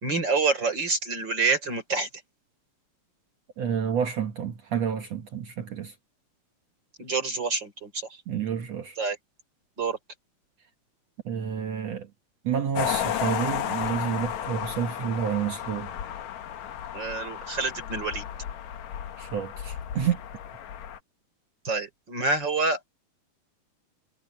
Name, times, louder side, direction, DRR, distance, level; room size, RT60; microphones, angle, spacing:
voice 1, 0.0-2.1 7.0-8.0 9.0-9.2 9.8-10.0 16.9-18.3 21.6-22.8, right 4 dB, 30° right, 4.0 m, -27 dB
voice 2, 3.6-5.9 8.3-9.0 11.3-12.1 12.4-15.9 19.2-20.2, right 8 dB, 65° right, 1.8 m, -29 dB
sound 1, 12.8-21.0, left 10 dB, 60° left, 2.2 m, -33 dB
omnidirectional pair, 4.3 m